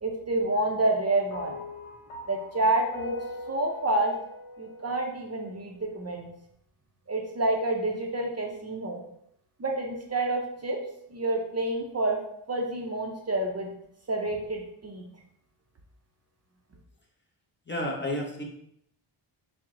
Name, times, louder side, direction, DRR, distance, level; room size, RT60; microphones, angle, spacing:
voice 1, 0.0-1.6 2.3-3.2 3.5-4.1 4.6-6.3 7.1-9.0 9.6-10.8 11.1-12.2 12.5-13.7 14.1-15.0, right 2 dB, 30° right, 0 dB, 0.5 m, -28 dB
sound 1, 1.3-5.7, left 1 dB, 85° left, 1.0 m, -42 dB
voice 2, 17.7-18.4, left 1 dB, 25° left, -1 dB, 0.5 m, -31 dB
4.5 x 2.0 x 3.6 m, 0.71 s
wide cardioid pair, 110°, 50 cm